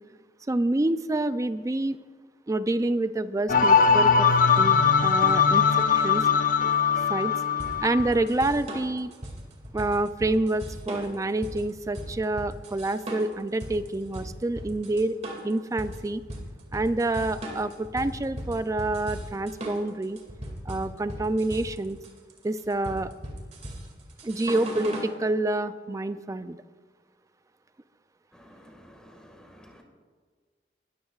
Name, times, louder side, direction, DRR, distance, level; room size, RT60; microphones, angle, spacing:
voice 1, 0.5-2.0 2.5-4.3 4.6-6.2 7.1-7.3 7.8-9.1 9.7-15.1 15.4-16.2 16.7-20.2 20.7-22.0 22.4-23.1 24.2-26.6, right 2 dB, 20° right, 12 dB, 0.4 m, -27 dB
sound 1, 3.5-8.1, left 6 dB, 50° left, 0.6 m, -21 dB
sound 2, 7.6-25.1, right 1 dB, 40° right, 2.2 m, -38 dB
voice 2, 28.3-29.8, equal, 5° left, 2 dB, 1.8 m, -52 dB
20.5 x 13.5 x 2.4 m, 1.5 s
head